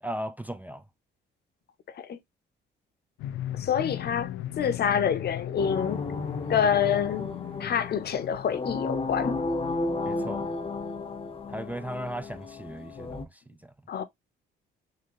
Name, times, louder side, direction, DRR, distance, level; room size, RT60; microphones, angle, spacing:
voice 1, 0.0-0.8 10.1-10.5 11.5-13.7, right 1 dB, 10° right, 0.4 m, -37 dB
sound 1, 3.2-8.6, left 12 dB, 90° left, 0.5 m, -37 dB
voice 2, 3.5-6.1 6.5-7.3 7.6-9.4 13.9-14.0, left 8 dB, 55° left, 0.8 m, -27 dB
sound 2, 5.6-13.2, left 3 dB, 30° left, 0.8 m, -33 dB
3.8 x 2.7 x 3.0 m
cardioid pair, 90°, 20 cm